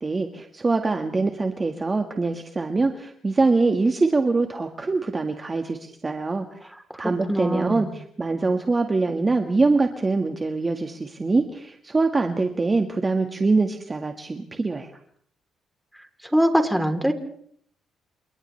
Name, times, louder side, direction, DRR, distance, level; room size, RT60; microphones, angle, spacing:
voice 1, 0.0-6.6 7.0-14.9, right 3 dB, 25° right, 5 dB, 1.7 m, -24 dB
voice 2, 7.3-7.9 16.3-17.1, equal, ahead, 5 dB, 3.4 m, -22 dB
29.5 x 28.5 x 3.3 m, 0.62 s
cardioid pair, 90°, 0 cm